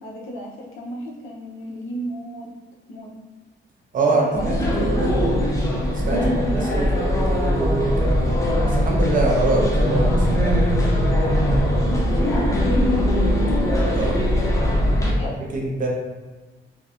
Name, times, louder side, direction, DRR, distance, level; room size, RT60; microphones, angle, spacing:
voice 1, 0.0-2.5 2.9-3.1 4.1-5.3 6.1-7.1 11.9-13.1 13.6-14.2 14.5-15.4, equal, 75° left, -2 dB, 0.6 m, -33 dB
voice 2, 3.9-5.4 6.1-8.4 8.7-10.9 13.8-14.2 15.5-15.9, right 2 dB, 40° right, -2 dB, 0.5 m, -24 dB
sound 1, 4.3-15.1, equal, 15° left, 0.4 m, -20 dB
2.6 x 2.2 x 2.3 m, 1.2 s
cardioid pair, 140°, 21 cm